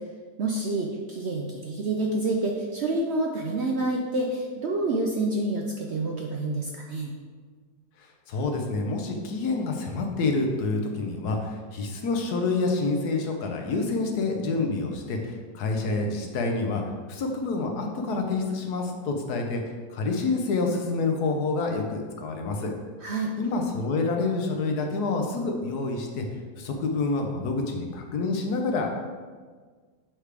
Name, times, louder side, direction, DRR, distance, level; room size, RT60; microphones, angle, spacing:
voice 1, 0.4-7.1 23.0-23.3, right 2 dB, 65° right, 0 dB, 0.7 m, -28 dB
voice 2, 8.0-16.8 17.1-19.6 19.9-22.7 23.4-26.2 26.6-28.9, left 3 dB, 80° left, 3 dB, 1.4 m, -27 dB
7.3 x 4.9 x 3.3 m, 1.5 s
omnidirectional pair, 1.7 m